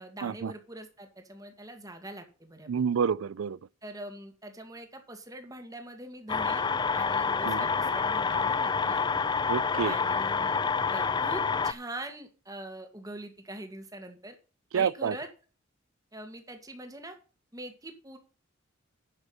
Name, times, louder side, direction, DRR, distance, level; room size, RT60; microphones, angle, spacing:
voice 1, 0.0-2.8 3.8-6.7 6.9-9.2 9.8-10.6 10.9-14.4 14.7-15.3 16.1-17.2 17.5-18.2, right 1 dB, 20° right, 2.1 m, -43 dB
voice 2, 2.7-3.6 7.4-7.6 9.5-9.9 14.7-15.1, right 6 dB, 85° right, 0.4 m, -28 dB
sound 1, 6.3-11.7, left 5 dB, 20° left, 0.5 m, -28 dB
11.0 x 7.1 x 5.6 m
head